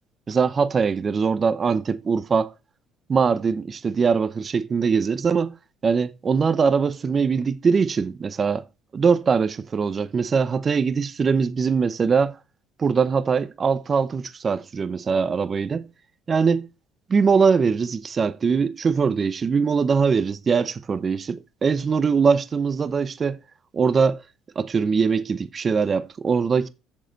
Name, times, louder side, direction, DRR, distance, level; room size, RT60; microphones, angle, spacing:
voice 1, 0.3-2.5 3.1-5.5 5.8-8.6 8.9-12.4 12.8-15.9 16.3-16.7 17.1-23.4 23.7-24.2 24.6-26.7, right 5 dB, 30° right, 0.6 m, -22 dB
7.4 x 6.8 x 4.5 m
cardioid pair, 110°, 0 cm